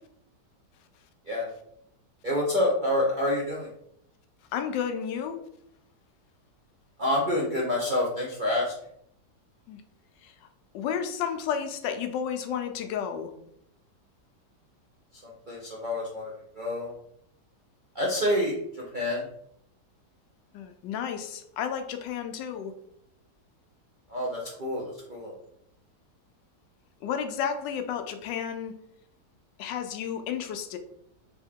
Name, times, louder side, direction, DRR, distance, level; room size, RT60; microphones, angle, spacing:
voice 1, 2.2-3.7 7.0-8.7 15.2-16.9 17.9-19.2 24.1-25.3, left 1 dB, 55° right, -5 dB, 0.5 m, -28 dB
voice 2, 4.5-5.4 9.7-9.8 10.2-10.3 10.7-13.3 20.5-22.7 27.0-28.7 29.6-30.8, left 8 dB, 85° left, 7 dB, 1.2 m, -32 dB
3.5 x 2.9 x 3.5 m, 0.73 s
omnidirectional pair, 1.9 m